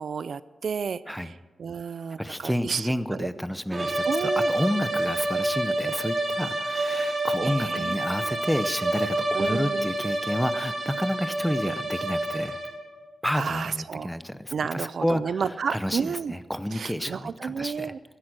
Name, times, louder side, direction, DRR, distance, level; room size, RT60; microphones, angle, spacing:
voice 1, 0.0-2.9 3.2-3.3 4.1-4.5 7.4-8.0 8.3-8.4 9.3-9.9 13.3-14.1 14.5-16.3 16.7-18.0, right 6 dB, 60° right, 17 dB, 0.4 m, -31 dB
voice 2, 2.2-12.6 13.2-15.4 15.7-17.9, equal, 5° left, 12 dB, 0.7 m, -30 dB
sound 1, 3.7-12.9, right 1 dB, 40° right, 2.8 m, -28 dB
16.0 x 12.5 x 6.2 m, 1.3 s
wide cardioid pair, 140°, 0 cm